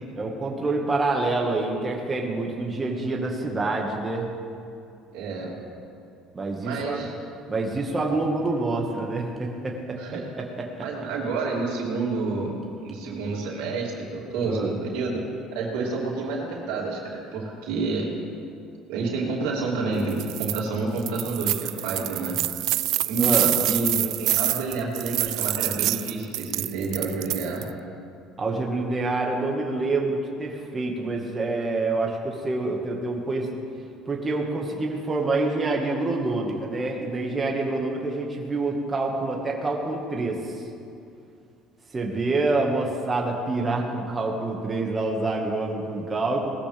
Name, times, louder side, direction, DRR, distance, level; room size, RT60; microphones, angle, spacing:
voice 1, 0.2-4.3 6.3-7.0 7.5-10.9 14.4-14.7 23.2-23.5 28.4-33.5 34.1-40.6 41.9-46.5, right 2 dB, 25° right, -1 dB, 1.8 m, -27 dB
voice 2, 5.1-5.6 6.6-7.1 10.0-10.2 10.8-12.6 12.8-15.2 15.5-18.1 18.9-22.4 23.0-27.7, right 3 dB, 85° right, -3 dB, 3.1 m, -29 dB
sound 1, 20.1-20.6 21.0-27.7, right 16 dB, 70° right, 0.3 m, -26 dB
19.5 x 13.5 x 3.5 m, 2.5 s
supercardioid pair, 100°, 0 cm